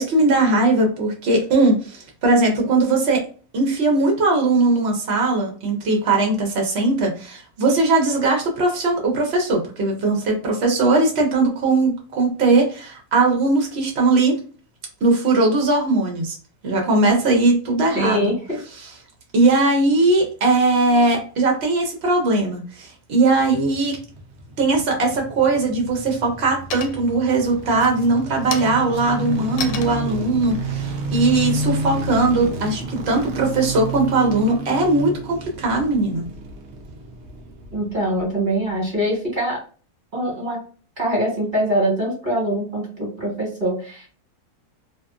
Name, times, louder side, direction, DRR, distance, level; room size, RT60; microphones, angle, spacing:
voice 1, 0.0-3.2 3.5-14.4 15.0-16.4 16.6-18.3 19.3-24.0 24.6-36.3, right 2 dB, 50° right, 1 dB, 0.9 m, -19 dB
voice 2, 17.9-18.6 37.7-39.6 40.1-40.6 41.0-44.1, right 1 dB, 30° right, -4 dB, 1.4 m, -23 dB
sound 1, 23.3-38.4 38.7-38.8, right 2 dB, 75° right, 0.6 m, -31 dB
sound 2, 26.0-26.4 26.7-27.3 27.7-32.1, left 7 dB, 85° left, 1.2 m, -34 dB
2.9 x 2.4 x 2.3 m, 0.40 s
omnidirectional pair, 1.9 m